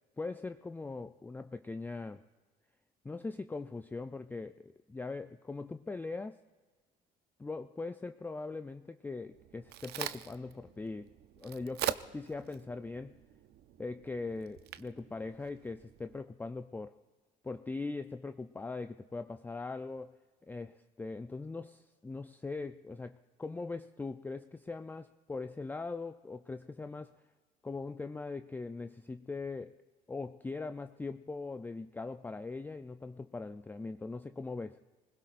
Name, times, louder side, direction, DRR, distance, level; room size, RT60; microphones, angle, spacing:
voice 1, 0.2-2.2 3.0-6.4 7.4-13.2 13.8-17.0 17.4-20.2 20.5-27.1 27.6-29.8 30.1-34.8, left 3 dB, 10° left, 9 dB, 0.4 m, -41 dB
Crack, 9.3-16.2, right 12 dB, 70° right, 0.6 m, -43 dB
25.0 x 20.5 x 2.5 m, 1.4 s
cardioid pair, 110°, 17 cm